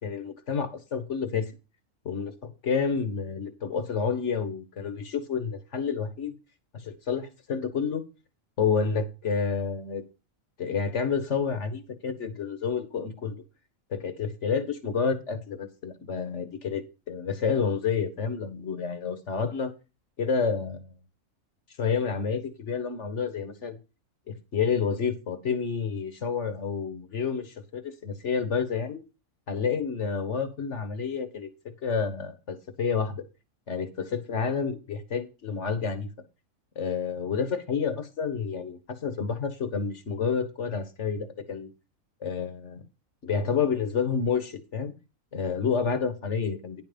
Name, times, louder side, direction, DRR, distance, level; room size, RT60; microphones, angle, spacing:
voice 1, 0.0-1.5 2.0-6.3 6.7-8.0 8.6-10.0 10.6-13.4 13.9-16.8 17.1-19.7 20.2-20.8 21.8-23.8 24.3-29.0 29.5-31.5 31.8-33.2 33.7-36.1 36.7-41.7 42.2-42.8 43.2-44.9 45.3-46.8, left 6 dB, 60° left, 1.8 m, -29 dB
10.5 x 6.0 x 5.3 m
omnidirectional pair, 1.4 m